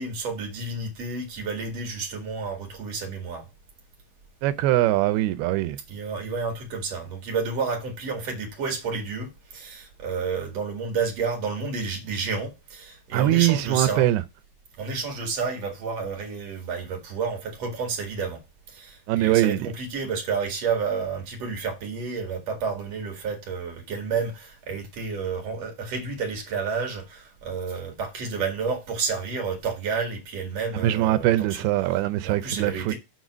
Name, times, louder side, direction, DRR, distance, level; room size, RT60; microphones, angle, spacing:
voice 1, 0.0-3.4 5.9-14.1 14.8-18.4 18.7-31.7 32.2-32.9, right 5 dB, 50° right, 2.8 m, -30 dB
voice 2, 4.4-5.8 13.1-14.2 19.1-19.6 30.8-32.9, right 14 dB, 90° right, 2.5 m, -22 dB
7.7 x 4.0 x 5.9 m
omnidirectional pair, 4.4 m